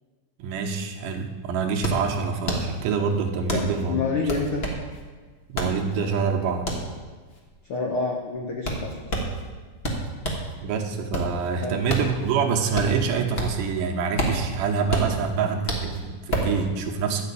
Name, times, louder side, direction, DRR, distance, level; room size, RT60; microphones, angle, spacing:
voice 1, 0.4-4.0 5.5-6.7 10.6-17.2, right 5 dB, 80° right, 3 dB, 2.6 m, -26 dB
sound 1, 0.9-1.0 1.2-10.5 10.9-13.7 14.0-16.6, right 1 dB, 55° left, 0.6 m, -29 dB
voice 2, 3.5-4.6 7.7-9.0 11.6-11.7, left 4 dB, 75° left, 0 dB, 1.2 m, -28 dB
11.5 x 5.0 x 8.3 m, 1.4 s
omnidirectional pair, 3.9 m